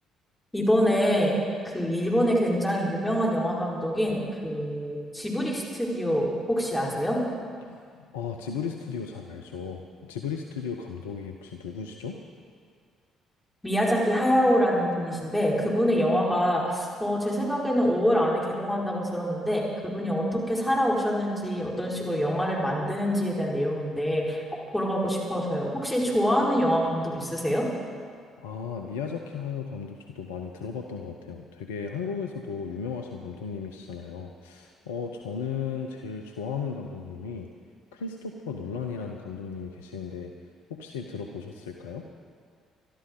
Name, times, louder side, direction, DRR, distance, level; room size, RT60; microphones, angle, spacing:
voice 1, 0.5-1.3 1.7-7.2 13.6-24.4 24.7-27.7, equal, 10° left, -4 dB, 4.6 m, -25 dB
voice 2, 7.6-12.2 28.4-37.5 37.9-40.3 40.7-42.1, left 6 dB, 80° left, 3 dB, 0.8 m, -35 dB
23.0 x 12.5 x 3.9 m, 2.1 s
figure-of-eight pair, 50°, 0 cm